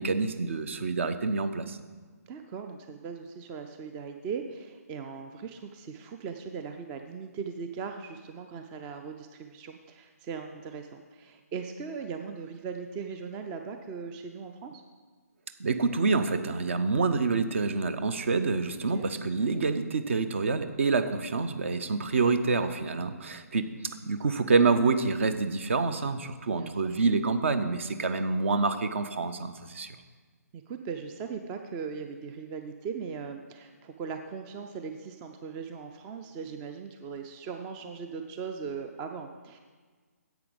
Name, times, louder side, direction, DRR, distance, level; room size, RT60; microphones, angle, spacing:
voice 1, 0.0-1.8 15.6-23.7 24.0-30.0, right 4 dB, 50° right, 10 dB, 0.6 m, -27 dB
voice 2, 2.3-14.8 18.9-19.1 26.5-26.9 30.5-39.6, right 5 dB, 15° right, 6 dB, 0.3 m, -39 dB
10.5 x 8.0 x 5.1 m, 1.4 s
figure-of-eight pair, 135°, 9 cm